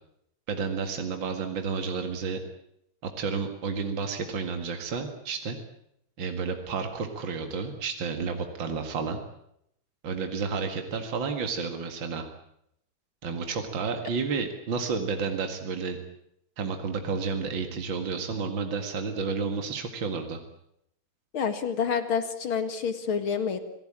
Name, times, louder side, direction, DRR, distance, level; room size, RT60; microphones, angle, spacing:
voice 1, 0.5-2.4 3.0-5.6 6.2-9.2 10.0-12.3 13.2-16.0 16.6-20.4, right 5 dB, 65° right, 5 dB, 2.7 m, -31 dB
voice 2, 21.3-23.6, left 6 dB, 80° left, 9 dB, 2.8 m, -28 dB
27.5 x 18.5 x 8.8 m, 0.76 s
omnidirectional pair, 2.2 m